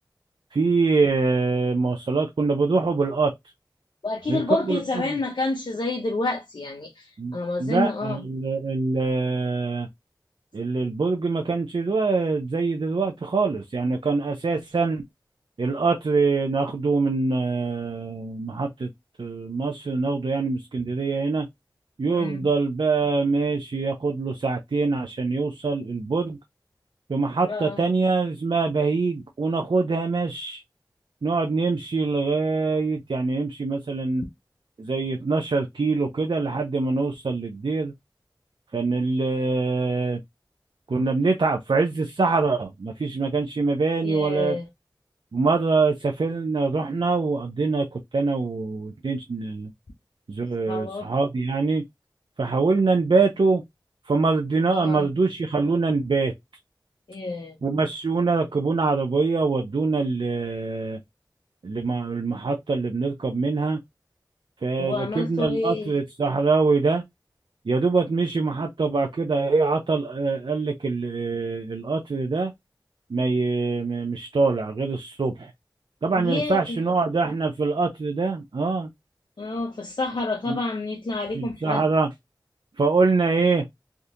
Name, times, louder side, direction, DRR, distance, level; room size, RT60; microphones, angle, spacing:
voice 1, 0.5-3.3 4.3-4.8 5.1-5.2 7.2-9.9 10.5-15.0 15.6-18.9 19.2-21.5 22.0-26.4 27.1-30.6 31.2-34.3 34.8-37.9 38.7-40.2 40.9-44.6 45.3-49.7 50.3-51.8 52.4-53.6 54.1-56.3 57.6-61.0 61.6-63.8 64.6-67.0 67.7-72.5 73.1-75.5 76.0-78.9 80.5-80.6 81.3-82.1 82.8-83.7, right 4 dB, 85° right, 0.5 m, -24 dB
voice 2, 4.0-8.2 22.1-22.5 27.5-27.8 44.0-44.7 50.7-51.1 54.7-55.1 57.1-57.6 64.8-65.9 76.2-76.8 79.4-81.9, left 2 dB, 90° left, 0.6 m, -29 dB
3.5 x 2.7 x 2.4 m
wide cardioid pair, 50°, 8 cm